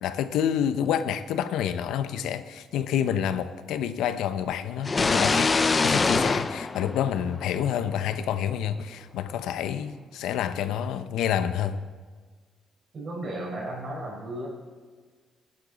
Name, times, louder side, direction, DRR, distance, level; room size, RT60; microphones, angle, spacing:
voice 1, 0.0-5.5 5.8-11.8, left 9 dB, 85° left, 12 dB, 0.6 m, -28 dB
sound 1, 4.8-7.7, left 4 dB, 30° left, 0.5 m, -24 dB
voice 2, 12.9-14.5, right 1 dB, 50° right, -2 dB, 4.3 m, -34 dB
17.0 x 9.7 x 4.0 m, 1.5 s
cardioid pair, 90°, 0 cm